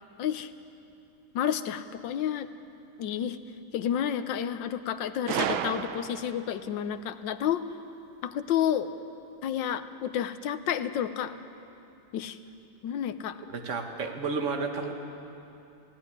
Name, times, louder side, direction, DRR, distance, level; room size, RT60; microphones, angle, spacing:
voice 1, 0.2-0.5 1.3-2.5 3.0-3.4 3.7-7.6 8.2-8.9 9.4-11.3 12.1-12.4 12.8-13.4, left 9 dB, 75° left, 11 dB, 1.5 m, -30 dB
Gunshot gunfire, 5.3-6.5, right 9 dB, 90° right, 1.6 m, -31 dB
voice 2, 13.5-14.9, right 4 dB, 40° right, 4 dB, 1.8 m, -31 dB
18.0 x 16.0 x 9.8 m, 2.7 s
omnidirectional pair, 2.1 m